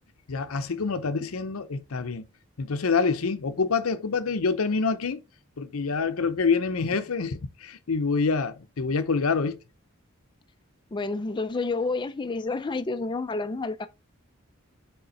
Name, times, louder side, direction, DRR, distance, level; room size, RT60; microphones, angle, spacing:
voice 1, 0.3-2.2 2.6-5.2 5.6-9.6, left 4 dB, 90° left, 0.7 m, -26 dB
voice 2, 10.9-13.9, left 3 dB, 20° left, 0.4 m, -29 dB
7.0 x 3.6 x 3.8 m
head